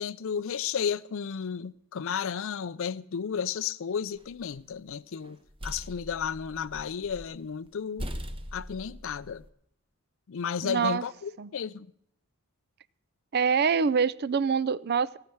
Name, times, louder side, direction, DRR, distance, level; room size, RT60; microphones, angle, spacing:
voice 1, 0.0-5.4 5.6-8.1 8.5-9.4 10.3-11.9, left 7 dB, 60° left, 0.4 m, -33 dB
sound 1, 4.2-4.8 5.2-7.4 7.7-7.8 8.0-9.5, equal, 25° right, 1.0 m, -40 dB
voice 2, 10.6-11.0 11.4-11.5 13.3-15.2, right 6 dB, 45° right, 0.5 m, -25 dB
17.5 x 5.8 x 9.4 m
head